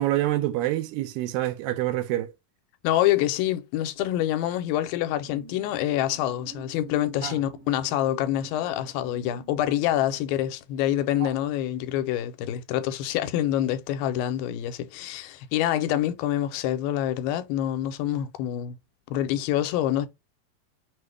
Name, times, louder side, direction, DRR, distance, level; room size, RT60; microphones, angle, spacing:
voice 1, 0.0-2.3 7.2-7.4 11.2-11.3, right 15 dB, 80° right, 2.2 m, -26 dB
voice 2, 2.8-18.8 19.1-20.1, left 12 dB, 85° left, 2.3 m, -26 dB
sound 1, 4.3-13.2 13.6-13.8, right 3 dB, 60° right, 1.8 m, -50 dB
6.2 x 2.1 x 3.2 m
omnidirectional pair, 4.1 m